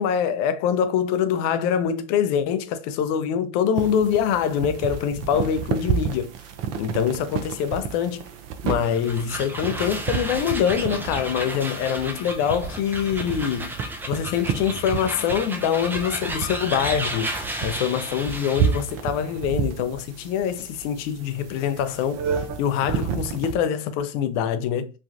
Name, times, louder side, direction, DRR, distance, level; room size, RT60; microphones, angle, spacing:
voice 1, 0.0-6.3 6.8-8.2 8.6-13.7 14.1-17.3 17.6-22.3 22.6-24.9, left 8 dB, 50° left, 0.5 m, -24 dB
sound 1, 3.8-23.6, right 7 dB, 50° right, 0.6 m, -31 dB
sound 2, 8.8-18.9, right 1 dB, 5° right, 0.4 m, -33 dB
3.1 x 2.2 x 2.6 m
hypercardioid pair, 85°, 34 cm